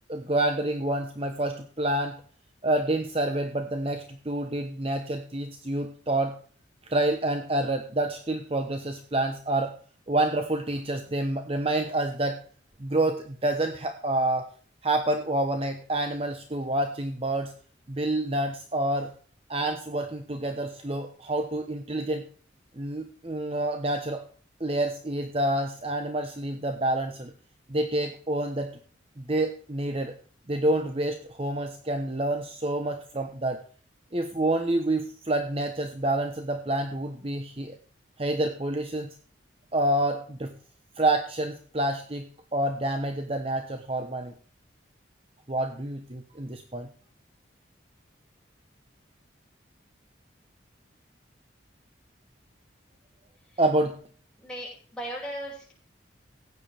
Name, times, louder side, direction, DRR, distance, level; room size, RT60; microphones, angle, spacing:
voice 1, 0.1-2.2 2.6-6.4 6.9-9.7 10.1-12.4 12.8-14.5 14.8-17.5 17.9-19.1 19.5-22.3 22.8-24.2 24.6-27.3 27.7-28.7 29.2-30.1 30.5-33.6 34.1-37.8 38.2-39.1 39.7-40.5 41.0-44.4 45.5-46.9 53.6-54.0, right 1 dB, 30° right, 6 dB, 0.9 m, -28 dB
voice 2, 54.4-55.7, right 1 dB, 5° left, -4 dB, 5.8 m, -37 dB
15.5 x 9.5 x 3.4 m, 0.43 s
head